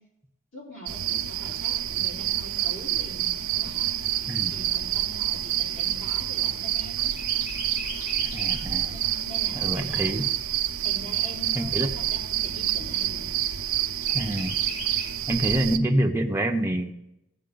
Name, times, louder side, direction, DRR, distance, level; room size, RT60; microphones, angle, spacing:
voice 1, 0.5-4.2 4.5-7.1 8.8-10.0 10.8-13.3, equal, 65° left, -5 dB, 3.9 m, -43 dB
sound 1, 0.9-15.8, right 12 dB, 90° right, 0.6 m, -28 dB
Chirp tweet, 3.0-6.7 7.1-8.8 9.2-9.3 9.6-10.6 11.2-11.3 11.7-11.8 12.2-12.7 14.0-15.1, equal, 90° left, 4.4 m, -40 dB
voice 2, 8.3-8.9 9.6-10.2 11.6-11.9 14.1-14.6 15.3-16.9, right 1 dB, 10° right, 3 dB, 0.6 m, -26 dB
15.0 x 7.6 x 3.8 m, 0.85 s
head